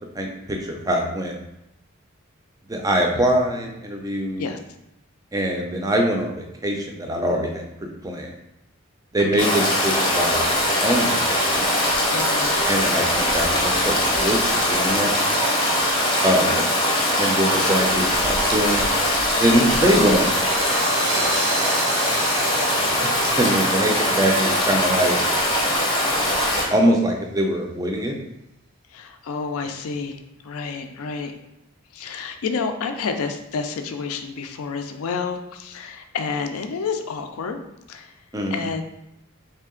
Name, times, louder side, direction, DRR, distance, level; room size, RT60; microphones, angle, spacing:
voice 1, 0.2-1.3 2.7-4.4 5.3-8.3 9.1-10.5 10.8-11.7 12.7-15.3 16.2-16.6 17.2-18.8 19.4-20.7 23.0-23.1 23.4-25.2 26.7-28.2 38.3-38.6, equal, 15° right, 2 dB, 0.4 m, -23 dB
voice 2, 9.2-9.6 12.0-12.8 16.4-16.7 28.9-31.3 31.9-37.6 37.9-38.1 38.5-38.8, left 5 dB, 80° left, 6 dB, 0.4 m, -30 dB
Stream, 9.4-26.7, left 1 dB, 25° left, 0.7 m, -21 dB
sound 1, 18.9-25.8, right 4 dB, 75° right, 0.7 m, -34 dB
3.3 x 2.7 x 3.7 m, 0.85 s
head